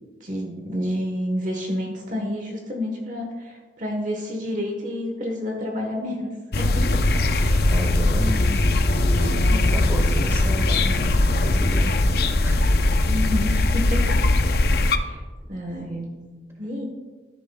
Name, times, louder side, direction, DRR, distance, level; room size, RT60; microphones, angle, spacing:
voice 1, 0.2-6.3 6.6-7.0 7.4-7.7 9.5-9.7 13.1-14.3 14.7-15.2 15.5-16.1 16.6-16.8, left 1 dB, 45° right, 1 dB, 1.2 m, -29 dB
sound 1, 6.5-15.0, left 2 dB, 55° left, 0.5 m, -20 dB
voice 2, 7.7-8.7 8.9-12.1 12.4-12.6, equal, 15° right, 0 dB, 1.7 m, -30 dB
14.0 x 11.0 x 2.3 m, 1.4 s
head